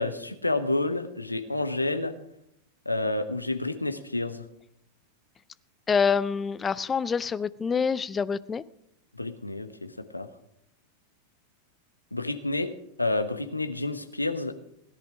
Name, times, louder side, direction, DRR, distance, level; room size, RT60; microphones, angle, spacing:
voice 1, 0.0-2.1 2.8-4.4 9.1-10.3 12.1-12.7 13.0-14.5, left 2 dB, 85° left, 10 dB, 1.0 m, -29 dB
voice 2, 5.9-8.6, left 6 dB, 20° left, 18 dB, 0.5 m, -26 dB
17.0 x 10.5 x 4.9 m, 0.78 s
figure-of-eight pair, 90°, 0 cm